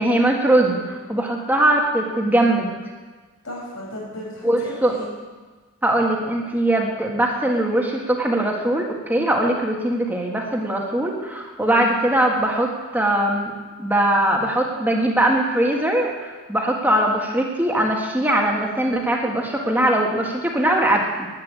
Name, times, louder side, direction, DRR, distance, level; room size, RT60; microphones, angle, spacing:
voice 1, 0.0-2.7 4.4-4.9 5.8-13.5 13.8-21.3, right 1 dB, 10° right, 0 dB, 1.6 m, -21 dB
voice 2, 3.4-5.1 11.6-11.9, equal, 80° left, -3 dB, 5.9 m, -35 dB
10.5 x 9.3 x 9.5 m, 1.3 s
head